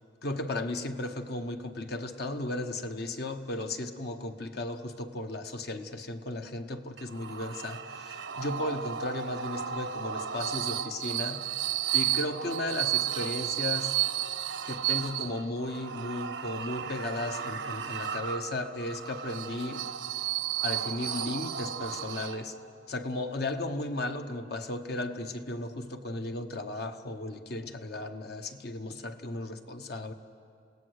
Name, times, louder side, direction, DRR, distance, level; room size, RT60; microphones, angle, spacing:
voice 1, 0.2-11.4 11.9-14.0 14.6-19.9 20.6-22.5 22.9-30.1, left 2 dB, 60° left, 1.1 m, -35 dB
sound 1, 7.0-22.7, right 10 dB, 75° right, 0.8 m, -33 dB
28.5 x 17.5 x 6.5 m
head